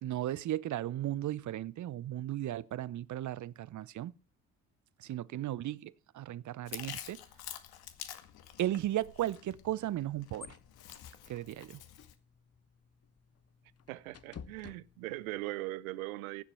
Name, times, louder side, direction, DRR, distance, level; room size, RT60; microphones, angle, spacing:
voice 1, 0.0-4.1 5.0-7.2 8.6-10.6 11.3-11.8, right 13 dB, 45° right, 0.8 m, -36 dB
Chewing mastication, 6.7-12.1, left 11 dB, 60° left, 2.0 m, -48 dB
sound 1, 9.7-15.4, left 7 dB, 35° left, 1.2 m, -55 dB
voice 2, 13.9-16.4, right 19 dB, 75° right, 0.8 m, -40 dB
15.5 x 9.8 x 5.8 m
hypercardioid pair, 50°, 42 cm